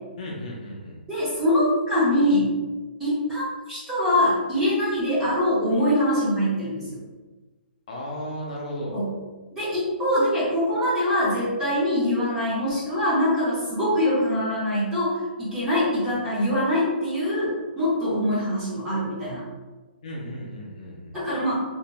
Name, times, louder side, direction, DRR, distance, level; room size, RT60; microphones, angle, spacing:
voice 1, 0.2-1.0 7.9-9.0 20.0-21.2, equal, 40° left, -3 dB, 0.5 m, -34 dB
voice 2, 1.1-2.5 3.0-7.0 8.9-9.1 9.5-19.4 21.1-21.6, left 1 dB, 5° right, -11 dB, 0.6 m, -23 dB
2.5 x 2.1 x 2.9 m, 1.2 s
hypercardioid pair, 175°, 6 cm